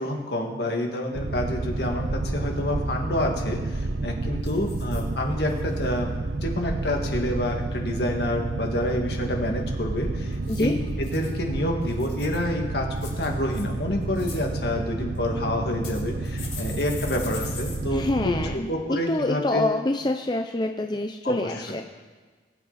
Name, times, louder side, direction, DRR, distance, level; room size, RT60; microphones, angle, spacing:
voice 1, 0.0-19.7 21.2-21.8, left 1 dB, 65° left, 2 dB, 1.9 m, -28 dB
Boat Water vehicle, 1.1-18.6, right 2 dB, 75° right, 0.8 m, -30 dB
sound 1, 4.4-5.0 5.5-5.8 10.3-11.3 11.8-12.5 13.0-13.6 14.0-14.4 15.1-15.2 15.8-17.8 18.1-18.2 18.5-18.6, left 5 dB, 45° left, 4.3 m, -41 dB
voice 2, 17.9-18.7 19.1-21.8, left 2 dB, 25° left, 4 dB, 0.5 m, -26 dB
21.0 x 8.3 x 4.1 m, 1.4 s
head